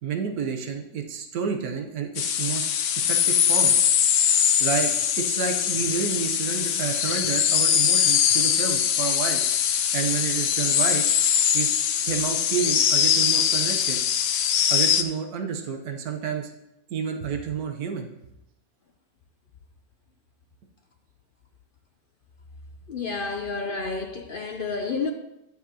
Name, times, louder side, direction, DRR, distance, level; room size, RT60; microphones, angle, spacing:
voice 1, 0.0-2.7 3.0-3.7 4.6-9.4 9.9-11.0 11.5-11.7 12.0-14.0 14.7-16.5 16.9-18.1, right 6 dB, 80° right, 1.4 m, -30 dB
sound 1, 2.2-15.0, left 9 dB, 80° left, 1.2 m, -22 dB
voice 2, 22.9-25.1, left 4 dB, 60° left, 0.5 m, -30 dB
13.0 x 7.2 x 2.9 m
omnidirectional pair, 1.6 m